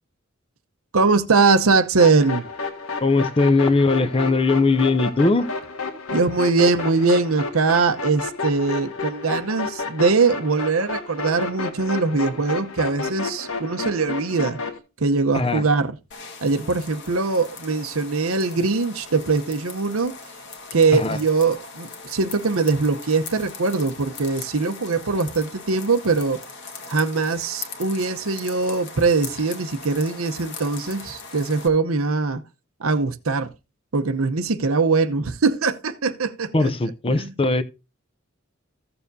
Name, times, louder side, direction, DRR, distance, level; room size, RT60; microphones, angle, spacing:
voice 1, 0.9-2.5 6.1-14.6 15.0-15.9 16.4-20.1 20.7-26.4 26.9-32.4 32.8-33.5 33.9-36.7 37.1-37.3, right 4 dB, 85° right, 0.8 m, -21 dB
sound 1, 2.0-14.8, left 3 dB, 80° left, 1.6 m, -31 dB
voice 2, 3.0-5.5 15.3-15.6 20.9-21.2 36.5-37.6, left 3 dB, 25° left, 0.6 m, -19 dB
sound 2, 16.1-31.7, left 4 dB, 55° left, 1.5 m, -39 dB
15.0 x 6.9 x 2.7 m
head